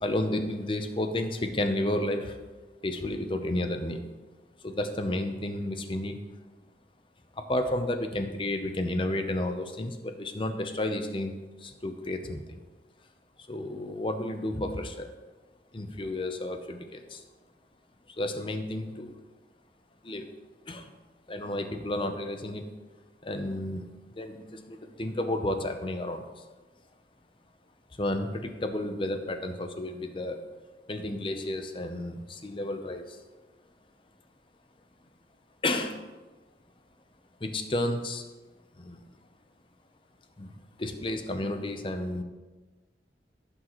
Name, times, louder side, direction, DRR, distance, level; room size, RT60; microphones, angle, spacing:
voice 1, 0.0-2.4 2.8-4.0 4.6-6.2 7.3-12.6 13.5-15.1 15.7-17.2 18.2-19.1 20.0-20.3 20.7-20.9 21.3-22.7 23.2-26.4 28.0-30.4 30.9-33.2 35.6-36.0 37.4-38.3 38.7-39.0 40.4-42.2, left 1 dB, 30° left, 7 dB, 0.7 m, -32 dB
15.0 x 6.3 x 3.1 m, 1.2 s
head